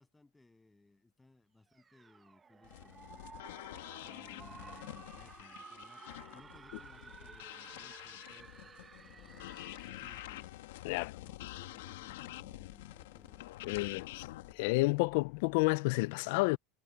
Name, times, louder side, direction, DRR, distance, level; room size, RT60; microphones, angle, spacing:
voice 1, 0.0-3.3 4.0-6.1 6.3-10.5 11.2-14.1, left 2 dB, 5° left, 7.4 m, -62 dB
sound 1, 1.7-10.6, right 5 dB, 15° right, 1.1 m, -54 dB
sound 2, 2.6-14.5, left 16 dB, 85° left, 2.0 m, -48 dB
sound 3, 9.1-15.8, left 12 dB, 35° left, 1.4 m, -62 dB
voice 2, 13.6-14.0 14.5-16.6, left 25 dB, 60° left, 0.4 m, -30 dB
supercardioid pair, 160°, 0 cm